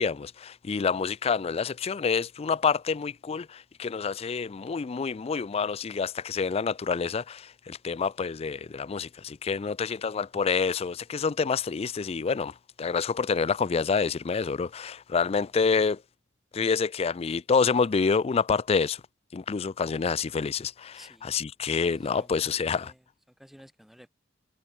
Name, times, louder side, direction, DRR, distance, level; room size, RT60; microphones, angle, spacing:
voice 1, 0.0-16.0 16.5-19.0 19.3-22.9, left 5 dB, 35° left, 0.4 m, -27 dB
voice 2, 20.9-21.3 22.1-23.0 23.4-24.1, equal, ahead, 3.5 m, -53 dB
head